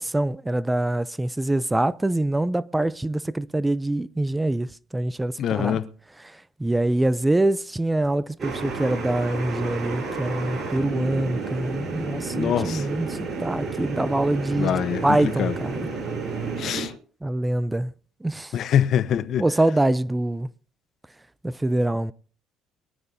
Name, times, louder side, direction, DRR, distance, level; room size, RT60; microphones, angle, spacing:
voice 1, 0.0-5.8 6.2-15.8 17.2-17.9 18.2-18.5 19.4-20.5 21.4-22.1, right 1 dB, 10° right, 0.6 m, -25 dB
voice 2, 5.4-5.9 12.3-12.8 14.6-15.5 16.6-16.9 18.5-19.4, left 9 dB, 60° left, 0.9 m, -24 dB
sound 1, 8.4-16.9, right 4 dB, 40° right, 6.5 m, -31 dB
23.0 x 12.0 x 2.7 m
supercardioid pair, 75°, 0 cm